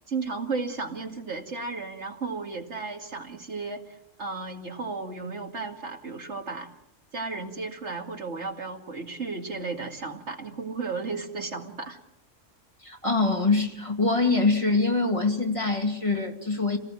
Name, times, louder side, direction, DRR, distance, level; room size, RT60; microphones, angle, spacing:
voice 1, 0.1-6.7 7.1-12.0, right 4 dB, 65° right, 3 dB, 2.5 m, -34 dB
voice 2, 12.8-16.8, left 3 dB, 25° left, 2 dB, 2.3 m, -24 dB
29.0 x 18.5 x 7.7 m, 0.88 s
omnidirectional pair, 1.3 m